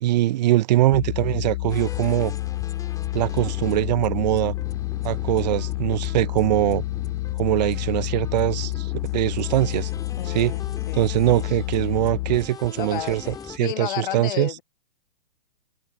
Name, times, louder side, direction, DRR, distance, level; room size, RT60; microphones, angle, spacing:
voice 1, 0.0-2.3 3.1-4.5 5.0-6.8 7.4-9.9 10.3-10.5 10.9-14.5, right 15 dB, 45° right, 0.6 m, -22 dB
sound 1, 0.9-12.4, left 18 dB, 30° left, 0.4 m, -29 dB
sound 2, 1.7-13.6, left 6 dB, 10° left, 2.0 m, -40 dB
voice 2, 10.2-11.1 12.7-14.6, left 13 dB, 60° left, 1.3 m, -32 dB
hypercardioid pair, 135°, 29 cm